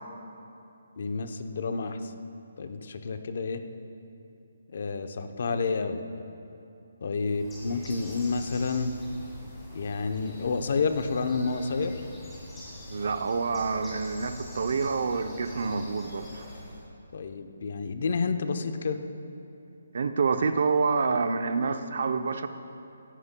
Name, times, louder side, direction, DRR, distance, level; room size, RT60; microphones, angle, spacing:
voice 1, 1.0-2.1 2.6-3.6 4.7-6.0 7.0-8.9 9.7-12.0 15.7-15.8 17.1-19.0, left 4 dB, 45° left, 8 dB, 0.7 m, -29 dB
Bird, 7.2-16.8, left 1 dB, 5° left, 2.3 m, -43 dB
voice 2, 12.9-16.4 19.9-22.5, right 4 dB, 50° right, 9 dB, 0.6 m, -27 dB
16.5 x 15.0 x 2.2 m, 2.7 s
hypercardioid pair, 175°, 0 cm